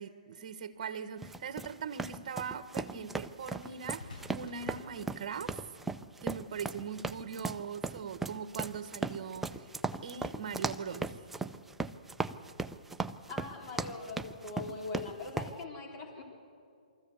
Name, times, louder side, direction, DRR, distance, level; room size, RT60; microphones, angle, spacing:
voice 1, 0.0-5.7 6.2-9.7 10.0-11.1, right 6 dB, 50° right, 11 dB, 1.3 m, -41 dB
sound 1, 0.7-0.8 3.6-5.5 6.4-6.6, left 3 dB, 70° left, 4.5 m, -51 dB
sound 2, 1.2-15.5, right 3 dB, 5° right, 0.4 m, -38 dB
voice 2, 13.3-16.2, left 3 dB, 30° left, 0 dB, 3.3 m, -41 dB
23.5 x 14.5 x 8.2 m, 2.4 s
hypercardioid pair, 145°, 5 cm